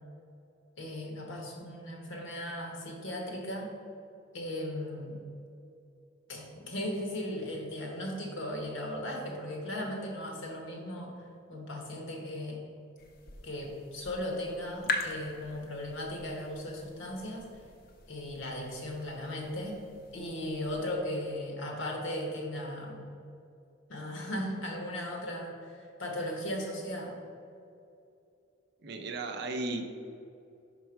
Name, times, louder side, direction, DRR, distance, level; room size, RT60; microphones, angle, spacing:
voice 1, 0.8-3.7 4.3-5.2 6.3-11.1 11.5-12.6 13.4-17.4 18.1-19.8 20.1-23.0 23.9-27.2, left 1 dB, 70° left, 1 dB, 1.2 m, -37 dB
sound 1, 13.0-20.8, left 3 dB, 45° left, 0.6 m, -42 dB
voice 2, 28.8-29.8, right 2 dB, 55° right, 5 dB, 0.6 m, -35 dB
5.9 x 4.5 x 4.5 m, 2.6 s
head